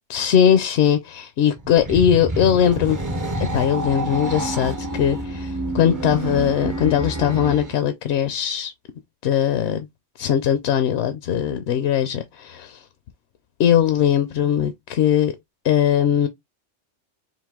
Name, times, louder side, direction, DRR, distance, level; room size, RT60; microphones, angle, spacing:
voice 1, 0.1-3.0 3.5-8.7 9.2-9.9 10.2-12.8 13.6-15.3 15.6-16.3, left 9 dB, 65° left, 0.8 m, -20 dB
sound 1, 1.6-7.8, right 1 dB, 25° right, 0.4 m, -28 dB
3.9 x 2.5 x 3.5 m
omnidirectional pair, 1.3 m